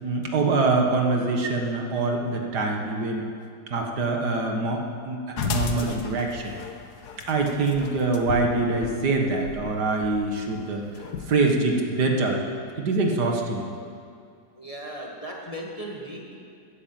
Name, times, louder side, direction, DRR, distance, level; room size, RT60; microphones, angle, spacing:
voice 1, 0.0-3.3 3.7-6.5 7.3-10.8 11.3-12.4 12.8-13.6, right 3 dB, 70° right, 1 dB, 2.1 m, -24 dB
sound 1, 5.4-11.5, left 6 dB, 70° left, 1.5 m, -34 dB
voice 2, 14.6-16.4, right 1 dB, 20° left, -2 dB, 1.8 m, -37 dB
16.0 x 9.8 x 7.6 m, 2.3 s
omnidirectional pair, 1.9 m